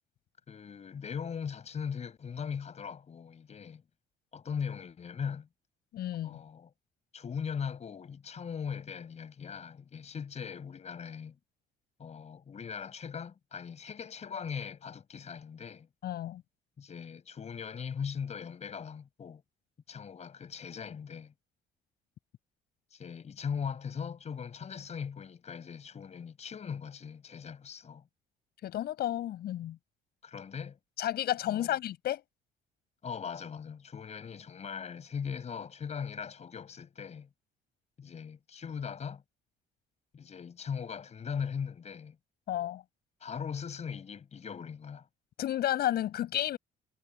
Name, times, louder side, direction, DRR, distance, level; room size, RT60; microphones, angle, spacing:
voice 1, 0.5-3.8 4.3-5.5 6.2-6.7 7.1-11.4 12.0-15.9 16.8-19.4 19.9-21.3 22.9-28.0 30.2-30.8 31.5-31.8 33.0-37.3 38.0-39.2 40.1-42.2 43.2-45.1, left 7 dB, 40° left, 7.1 m, -39 dB
voice 2, 5.9-6.4 16.0-16.4 28.6-29.8 31.0-32.2 42.5-42.8 45.4-46.6, left 12 dB, 65° left, 6.5 m, -32 dB
cardioid pair, 105°, 17 cm